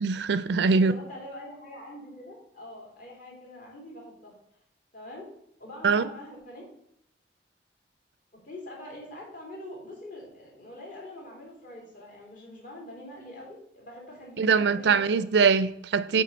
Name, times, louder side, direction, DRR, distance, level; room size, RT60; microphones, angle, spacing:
voice 1, 0.0-0.9 5.8-6.0 14.4-16.2, right 5 dB, 80° right, 0.4 m, -22 dB
voice 2, 0.7-4.3 4.9-5.3 5.6-6.7 8.4-15.2, left 1 dB, 50° left, 2.6 m, -44 dB
8.4 x 3.7 x 5.2 m
head